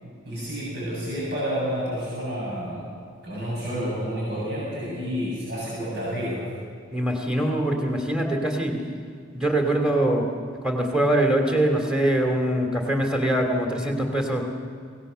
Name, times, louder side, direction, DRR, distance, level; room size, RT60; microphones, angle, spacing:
voice 1, 0.0-2.9 3.2-6.4, equal, 60° right, -6 dB, 7.8 m, -30 dB
voice 2, 6.9-8.8 9.3-10.3 10.6-14.5, right 1 dB, 5° right, 2 dB, 2.9 m, -23 dB
23.5 x 18.5 x 6.9 m, 2.1 s
head